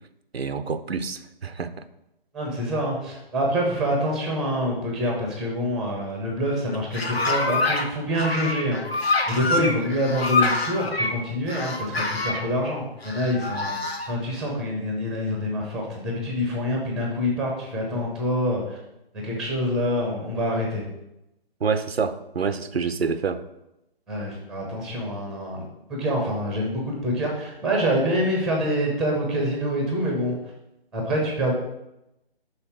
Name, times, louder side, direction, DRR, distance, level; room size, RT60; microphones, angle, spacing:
voice 1, 0.3-1.8 9.6-9.7 21.6-23.4, right 5 dB, 85° right, 11 dB, 0.6 m, -27 dB
voice 2, 2.3-13.7 14.1-18.8 19.2-20.8 24.1-25.6 25.9-30.3 30.9-31.5, equal, ahead, 0 dB, 0.6 m, -26 dB
sound 1, 6.7-7.9 8.1-11.1 11.5-12.4 13.0-14.1, left 2 dB, 90° left, 1.1 m, -26 dB
5.6 x 3.9 x 5.7 m, 0.89 s
figure-of-eight pair, 140°, 30 cm